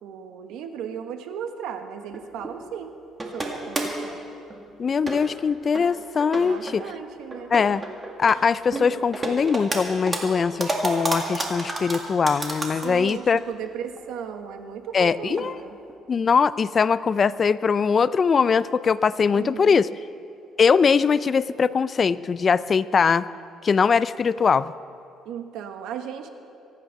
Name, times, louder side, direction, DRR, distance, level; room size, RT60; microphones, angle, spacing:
voice 1, 0.0-3.0 3.3-4.2 6.3-7.5 12.8-15.8 19.3-19.8 25.2-26.3, right 8 dB, 80° right, 7 dB, 1.3 m, -36 dB
sound 1, 2.1-2.6 3.2-4.0 4.5-4.6 5.0-5.4 5.7-5.8 6.2-6.8 7.3-8.4 8.7-9.8 10.1-13.1 13.4-13.5 14.0-14.1 14.3-14.4 15.3-15.5 15.9-16.0, right 2 dB, 20° right, 2.0 m, -29 dB
voice 2, 4.8-6.8 7.5-7.8 8.2-13.4 14.9-15.5 16.1-19.9 20.6-23.3 23.6-24.7, left 5 dB, 30° left, 17 dB, 0.3 m, -21 dB
24.0 x 9.5 x 5.8 m, 2.6 s
cardioid pair, 145°, 0 cm